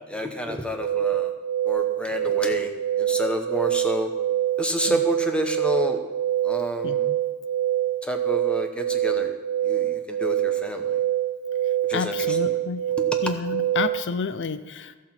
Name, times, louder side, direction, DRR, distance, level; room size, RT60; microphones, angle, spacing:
voice 1, 0.1-1.3 1.7-2.7 3.0-4.1 4.6-6.0 6.4-7.0 8.0-9.3 9.6-11.0 11.9-12.1, left 1 dB, 5° left, 5 dB, 0.8 m, -29 dB
sound 1, 0.8-14.0, right 12 dB, 70° right, 0.4 m, -25 dB
voice 2, 6.8-7.2 11.9-12.9 13.2-14.9, left 5 dB, 55° left, 12 dB, 0.5 m, -30 dB
16.0 x 6.0 x 4.4 m, 1.4 s
head